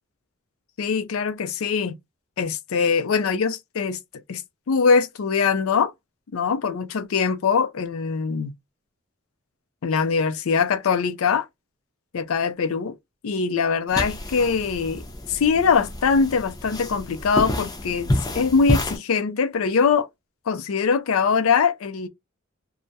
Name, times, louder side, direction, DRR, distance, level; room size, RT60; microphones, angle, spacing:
voice 1, 0.8-2.0 2.4-4.0 4.3-4.4 4.7-5.9 6.3-8.5 9.8-11.5 12.1-13.0 13.2-15.0 15.3-20.1 20.5-22.1, left 5 dB, 75° left, 0.4 m, -22 dB
sound 1, 13.9-19.0, left 1 dB, 20° left, 0.5 m, -28 dB
2.3 x 2.0 x 2.7 m
head